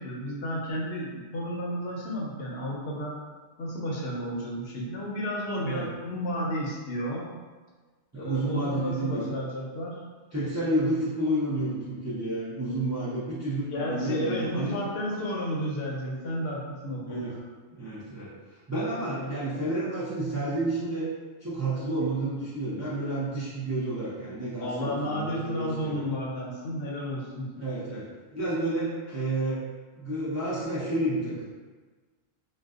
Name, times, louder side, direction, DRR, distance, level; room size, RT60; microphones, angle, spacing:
voice 1, 0.0-3.2 3.6-7.3 8.2-10.0 13.7-17.4 19.2-19.4 24.6-27.5, equal, 65° left, -4 dB, 0.8 m, -32 dB
voice 2, 8.1-9.3 10.3-14.7 17.1-17.4 17.7-18.3 18.7-21.1 21.4-26.1 27.6-28.1 28.3-29.6 30.0-31.4, right 1 dB, 25° right, -10 dB, 0.3 m, -30 dB
2.5 x 2.2 x 2.3 m, 1.4 s
omnidirectional pair, 1.1 m